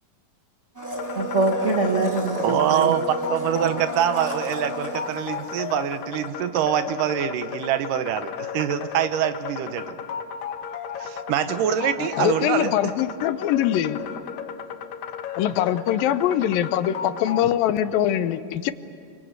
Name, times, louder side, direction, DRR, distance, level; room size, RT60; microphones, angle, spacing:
Domestic sounds home sounds, 0.7-6.0 6.3-6.4, equal, 5° right, 2.0 m, -32 dB
sound 1, 1.0-17.4, left 7 dB, 65° left, 2.1 m, -35 dB
voice 1, 1.1-3.0 3.5-3.8, right 3 dB, 50° right, 0 dB, 0.8 m, -24 dB
voice 2, 2.4-3.0 3.3-10.0 11.0-12.9, right 9 dB, 75° right, 10 dB, 2.4 m, -25 dB
voice 3, 12.0-14.0 15.4-18.7, left 11 dB, 80° left, 13 dB, 2.6 m, -23 dB
29.5 x 24.5 x 8.1 m, 2.3 s
omnidirectional pair, 4.0 m